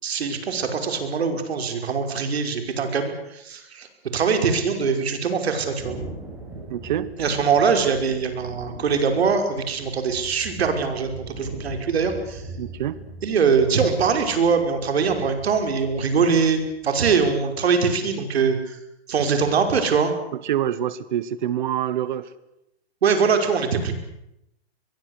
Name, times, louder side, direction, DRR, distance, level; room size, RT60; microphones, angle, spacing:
voice 1, 0.0-3.9 4.1-6.0 7.2-12.4 13.2-18.8 19.1-20.1 23.0-23.9, right 5 dB, 70° right, 6 dB, 5.6 m, -22 dB
Thunder, 5.8-17.3, right 2 dB, 5° right, 6.4 m, -41 dB
voice 2, 6.7-7.1 12.6-13.0 20.3-22.3, right 11 dB, 45° right, 16 dB, 1.2 m, -26 dB
24.0 x 22.0 x 8.3 m, 0.84 s
hypercardioid pair, 170°, 32 cm